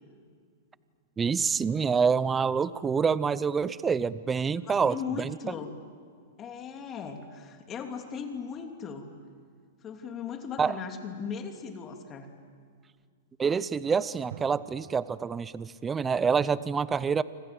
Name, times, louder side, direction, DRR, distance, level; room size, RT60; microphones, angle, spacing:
voice 1, 1.2-5.4 10.6-10.7 13.4-17.2, right 6 dB, 15° right, 17 dB, 0.6 m, -27 dB
voice 2, 4.7-5.7 6.4-9.1 9.8-12.3, left 6 dB, 25° left, 4 dB, 2.9 m, -38 dB
sound 1, 8.3-9.6 14.3-16.2, right 10 dB, 60° right, 1.8 m, -50 dB
28.0 x 26.0 x 7.8 m, 2.1 s
hypercardioid pair, 135°, 0 cm